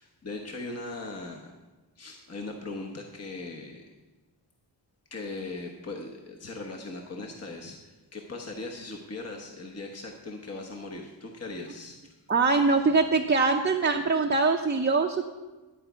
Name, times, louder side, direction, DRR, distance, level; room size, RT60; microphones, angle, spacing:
voice 1, 0.0-1.6 2.0-3.9 5.1-12.1, left 2 dB, 35° left, 1 dB, 1.2 m, -39 dB
voice 2, 12.3-15.2, right 4 dB, 25° right, 2 dB, 0.7 m, -23 dB
11.5 x 4.9 x 8.1 m, 1.2 s
wide cardioid pair, 90°, 45 cm